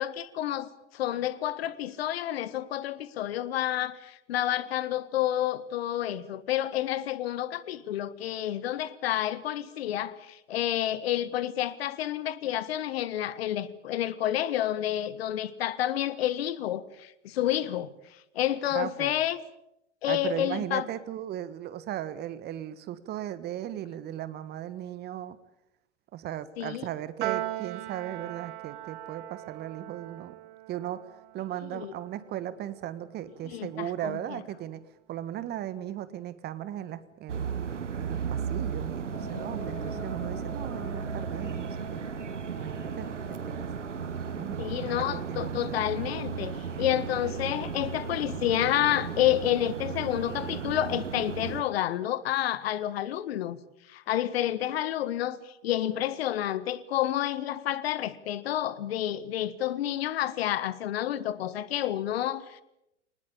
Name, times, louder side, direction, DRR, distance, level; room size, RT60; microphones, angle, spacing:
voice 1, 0.0-17.9 18.3-19.4 20.0-20.9 26.6-26.9 31.7-31.9 33.4-34.2 44.6-53.6 53.9-62.6, left 12 dB, 55° left, 1.7 m, -29 dB
voice 2, 18.7-19.2 20.1-25.4 26.1-30.3 30.7-31.0 31.3-34.8 35.1-37.5 38.0-42.0 42.6-43.7 44.3-45.6, right 11 dB, 25° right, 1.5 m, -37 dB
Piano, 27.2-33.7, right 16 dB, 45° right, 1.5 m, -39 dB
sound 1, 37.3-51.6, right 6 dB, 75° right, 1.5 m, -35 dB
sound 2, 39.1-50.9, left 3 dB, 25° left, 5.5 m, -48 dB
23.0 x 19.5 x 8.7 m
figure-of-eight pair, 100°, 36 cm